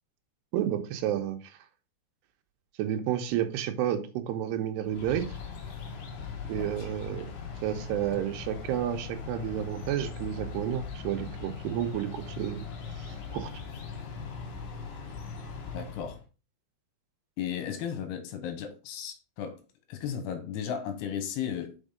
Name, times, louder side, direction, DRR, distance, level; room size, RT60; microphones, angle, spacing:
voice 1, 0.5-1.6 2.8-5.2 6.5-7.3 7.6-12.7 13.0-13.5, right 11 dB, 85° right, 3.0 m, -31 dB
sound 1, 4.8-16.2, left 5 dB, 60° left, 2.6 m, -40 dB
voice 2, 6.6-6.9 7.4-7.6 15.7-16.2 17.4-19.6 19.9-21.9, left 8 dB, 80° left, 3.1 m, -35 dB
5.9 x 5.3 x 5.0 m
omnidirectional pair, 4.7 m